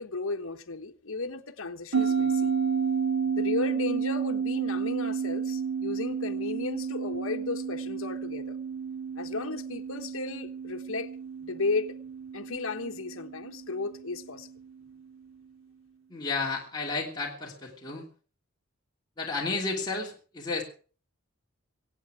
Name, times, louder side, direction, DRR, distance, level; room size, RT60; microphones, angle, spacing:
voice 1, 0.0-2.5 3.4-8.6 9.2-11.1 11.4-11.9 12.3-14.5, left 3 dB, 65° left, 1.3 m, -34 dB
sound 1, 1.9-14.7, right 6 dB, 75° right, 2.4 m, -31 dB
voice 2, 16.1-18.0 19.2-20.6, left 3 dB, 20° left, 2.9 m, -32 dB
25.0 x 8.6 x 4.9 m
head